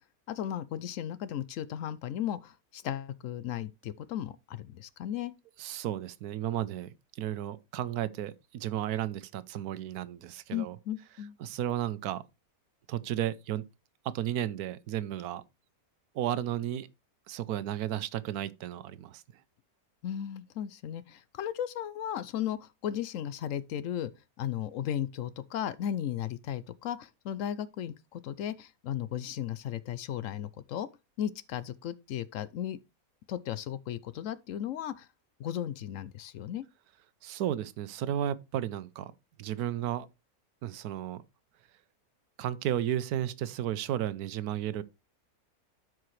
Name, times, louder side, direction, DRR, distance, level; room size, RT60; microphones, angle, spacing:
voice 1, 0.3-5.3 10.5-11.3 20.0-24.1 24.4-30.9 31.2-32.8 33.3-35.1 35.4-36.7, left 10 dB, 70° left, 0.9 m, -35 dB
voice 2, 5.6-10.8 11.4-12.2 12.9-13.6 14.0-15.4 16.1-16.9 17.3-19.2 37.2-39.1 39.4-40.1 40.6-41.2 42.4-44.8, right 11 dB, 85° right, 1.1 m, -33 dB
12.5 x 4.8 x 3.1 m
omnidirectional pair, 1.6 m